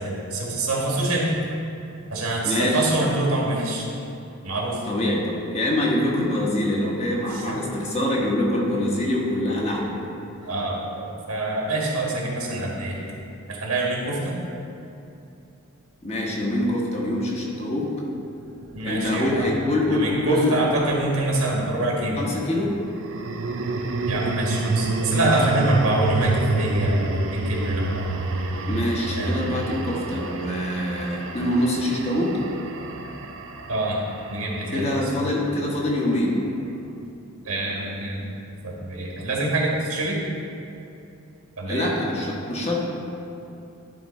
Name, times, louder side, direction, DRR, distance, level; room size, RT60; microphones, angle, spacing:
voice 1, 0.0-1.4 2.1-3.9 4.4-4.8 7.3-7.7 10.4-13.2 13.5-14.4 18.7-19.5 19.9-22.3 24.1-28.1 29.2-29.4 33.7-34.0 34.3-35.3 37.4-38.3 38.6-40.2 41.6-41.9, right 2 dB, 90° right, -3 dB, 1.6 m, -25 dB
voice 2, 2.4-2.9 4.8-10.0 16.0-17.9 18.8-20.6 22.2-22.7 28.7-32.3 34.7-36.4 41.7-42.8, left 1 dB, 30° left, -3 dB, 1.1 m, -24 dB
sound 1, 18.7-21.2 22.9-35.1, right 2 dB, 60° right, 0.5 m, -28 dB
11.0 x 3.7 x 4.2 m, 2.8 s
head